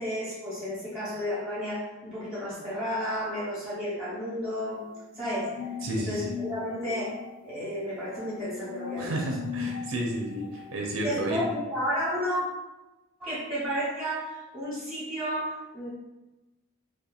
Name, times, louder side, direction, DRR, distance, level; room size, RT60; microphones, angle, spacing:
voice 1, 0.0-4.8 5.1-5.7 5.9-9.1 11.0-12.4 13.2-15.9, equal, ahead, -11 dB, 0.9 m, -32 dB
sound 1, 4.7-11.5, left 7 dB, 60° left, 0.4 m, -40 dB
voice 2, 5.8-6.3 9.0-11.4, right 1 dB, 85° right, -1 dB, 0.5 m, -31 dB
2.8 x 2.2 x 2.3 m, 1.0 s
head